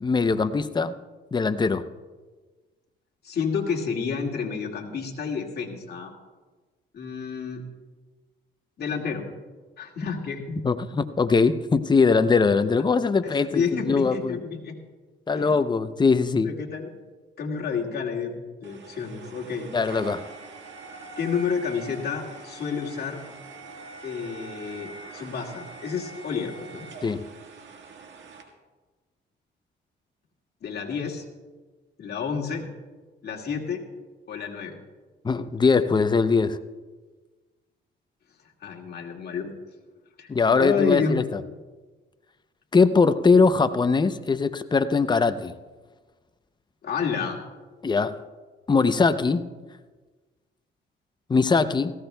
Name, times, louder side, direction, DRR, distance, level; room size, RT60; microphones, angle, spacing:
voice 1, 0.0-0.9 1.3-1.9 10.6-14.4 15.3-16.5 19.7-20.3 27.0-27.3 35.2-36.6 40.3-41.2 42.7-45.5 47.8-48.2 48.7-49.4 51.3-51.9, left 4 dB, 20° left, 12 dB, 0.6 m, -21 dB
voice 2, 3.2-6.1 6.9-7.6 8.8-9.3 9.8-10.6 13.2-14.7 15.4-15.7 16.4-16.9 17.4-18.3 18.6-19.7 21.2-23.2 24.0-26.9 30.6-31.2 32.0-32.7 33.2-33.8 34.3-34.7 38.6-39.5 40.2-40.3 40.6-41.4 46.8-47.4, left 6 dB, 55° left, -1 dB, 2.1 m, -30 dB
sound 1, 18.6-28.4, right 3 dB, 70° right, 1.7 m, -43 dB
18.0 x 15.0 x 2.3 m, 1.3 s
cardioid pair, 90°, 20 cm